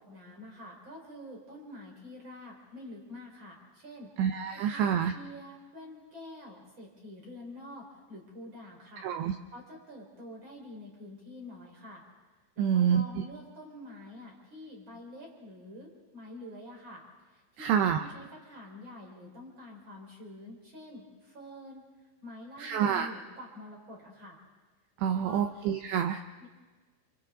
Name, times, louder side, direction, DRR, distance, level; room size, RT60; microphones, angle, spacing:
voice 1, 0.0-4.1 4.5-9.1 9.5-12.0 12.5-21.8 22.2-24.4 25.0-25.4 26.4-26.5, left 1 dB, 25° right, 0 dB, 4.6 m, -47 dB
voice 2, 4.2-5.1 9.0-9.3 12.6-13.2 17.6-18.0 22.6-23.1 25.0-26.2, right 8 dB, 80° right, 6 dB, 2.5 m, -27 dB
28.5 x 27.0 x 3.8 m, 1.3 s
omnidirectional pair, 5.8 m